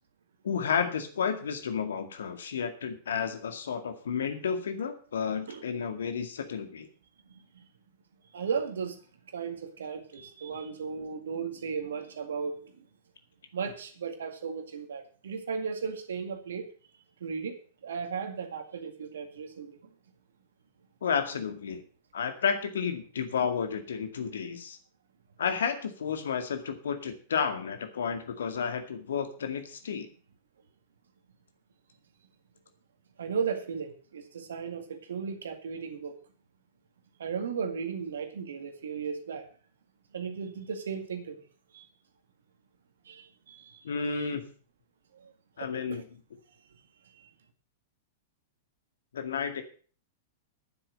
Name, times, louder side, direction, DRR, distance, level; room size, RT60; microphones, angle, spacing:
voice 1, 0.4-6.9 21.0-21.8 22.1-24.8 25.4-30.1 43.8-44.5 45.6-46.0 49.1-49.6, left 6 dB, 65° left, 7 dB, 2.0 m, -31 dB
voice 2, 8.3-9.0 9.3-12.6 13.5-16.7 17.2-17.6 17.8-19.8 33.2-36.2 37.2-39.5 40.1-41.4 41.7-41.8 43.1-44.3 45.2-45.3 45.6-46.0, right 6 dB, 65° right, 7 dB, 2.0 m, -35 dB
9.7 x 7.8 x 7.9 m, 0.41 s
figure-of-eight pair, 95°, 0 cm